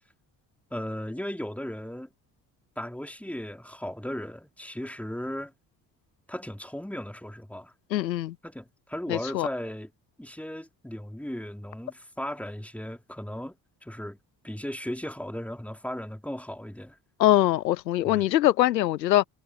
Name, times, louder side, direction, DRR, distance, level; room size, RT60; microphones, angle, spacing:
voice 1, 0.7-2.1 2.8-5.5 6.3-7.7 8.4-9.9 10.2-14.2 14.4-17.0 18.0-18.3, equal, 5° left, 3.9 m, -36 dB
voice 2, 7.9-8.3 9.1-9.5 17.2-19.3, left 14 dB, 85° left, 0.9 m, -22 dB
figure-of-eight pair, 50°, 50 cm